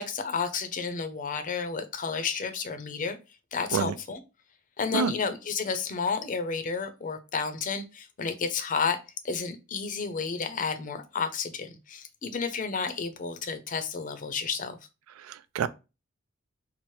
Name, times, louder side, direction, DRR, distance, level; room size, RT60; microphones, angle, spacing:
voice 1, 0.0-3.2 3.5-4.2 4.8-9.0 9.2-14.8, left 5 dB, 40° left, 0.5 m, -31 dB
voice 2, 15.2-15.7, right 7 dB, 90° right, 0.3 m, -28 dB
4.3 x 2.0 x 3.1 m
head